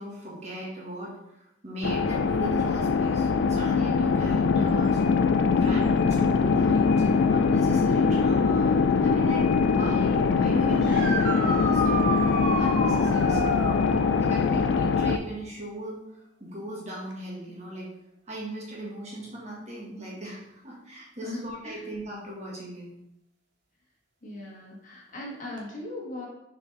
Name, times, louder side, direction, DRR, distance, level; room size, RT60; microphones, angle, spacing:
voice 1, 0.0-5.0 5.5-12.0 12.6-13.4 14.2-17.9 18.3-22.9, right 1 dB, 40° right, -5 dB, 1.6 m, -38 dB
sound 1, 1.8-15.2, left 5 dB, 70° left, 0.4 m, -22 dB
sound 2, 10.8-13.8 17.1-17.2 19.2-19.3 25.6-25.7, right 2 dB, 65° right, 1.2 m, -30 dB
voice 2, 13.1-13.5 21.2-21.8 24.2-26.3, left 2 dB, 45° left, -2 dB, 1.4 m, -38 dB
6.5 x 4.8 x 3.3 m, 0.83 s
head